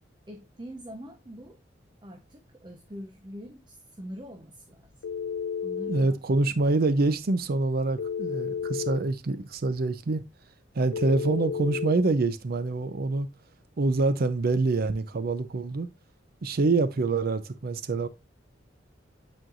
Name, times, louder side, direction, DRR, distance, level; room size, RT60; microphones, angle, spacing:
voice 1, 0.3-1.6 2.0-4.9 5.6-6.2, equal, 25° right, 0.8 m, -43 dB
Telephone, 5.0-6.1 8.0-9.0 10.9-12.0, left 7 dB, 85° left, 0.3 m, -32 dB
voice 2, 5.9-10.2 10.7-13.3 13.8-15.9 16.4-18.1, right 3 dB, 55° right, 0.5 m, -26 dB
9.0 x 4.5 x 2.4 m
head